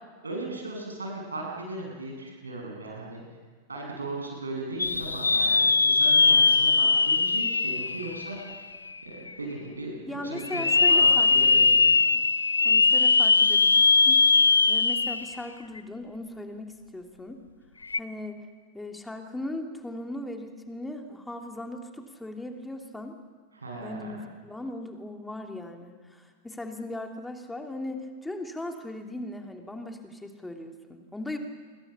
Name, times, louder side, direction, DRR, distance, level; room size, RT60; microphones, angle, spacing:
voice 1, 0.2-3.2 3.7-8.4 9.0-10.6 10.9-11.9 23.5-24.1, right 2 dB, 75° right, 1 dB, 7.5 m, -37 dB
sound 1, 4.8-8.8 9.3-9.4 10.4-15.4 15.8-15.9 17.8-18.0, left 4 dB, 80° left, 0.8 m, -21 dB
voice 2, 10.1-12.2 12.6-14.2 14.7-17.4 17.9-18.5 18.7-23.2 23.8-31.4, left 1 dB, 5° left, 4 dB, 3.0 m, -38 dB
29.0 x 22.5 x 7.3 m, 1.5 s
figure-of-eight pair, 90°, 0 cm